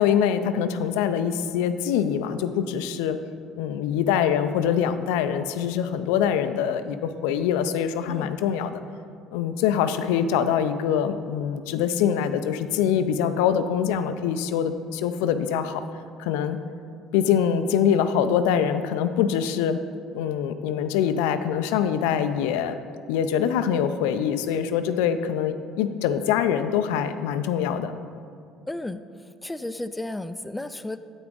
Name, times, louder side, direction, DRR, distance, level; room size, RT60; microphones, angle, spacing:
voice 1, 0.0-3.2 3.6-8.8 9.3-15.8 16.2-16.6 17.1-19.8 20.1-22.8 23.1-27.9, left 8 dB, 85° left, 10 dB, 0.3 m, -24 dB
voice 2, 28.7-29.0 29.4-31.0, left 2 dB, 10° left, 10 dB, 0.3 m, -33 dB
7.8 x 6.0 x 3.8 m, 2.3 s
supercardioid pair, 85°, 0 cm